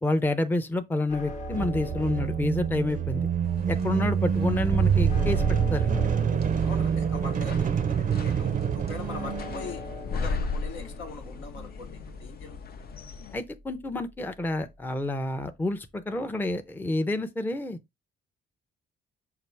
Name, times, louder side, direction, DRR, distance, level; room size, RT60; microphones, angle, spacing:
voice 1, 0.0-3.3 3.7-6.1 13.3-17.8, left 2 dB, 10° left, 0.6 m, -29 dB
sound 1, 1.1-15.3, left 2 dB, 35° left, 1.0 m, -43 dB
sound 2, 1.3-10.1, right 7 dB, 40° right, 0.5 m, -26 dB
sound 3, 3.4-13.4, left 4 dB, 50° left, 0.7 m, -38 dB
voice 2, 6.6-9.8 10.1-12.9, left 3 dB, 80° left, 1.1 m, -42 dB
5.8 x 2.5 x 3.3 m
cardioid pair, 90°, 20 cm